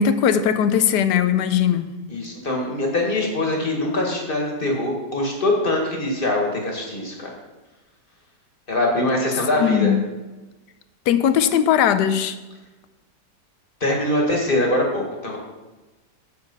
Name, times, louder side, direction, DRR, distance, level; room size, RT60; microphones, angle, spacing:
voice 1, 0.0-2.0 9.6-10.0 11.1-12.4, left 8 dB, 75° left, 1.2 m, -19 dB
voice 2, 2.1-7.3 8.7-9.9 13.8-15.4, left 1 dB, 30° left, 2.0 m, -23 dB
8.0 x 7.0 x 5.5 m
omnidirectional pair, 1.9 m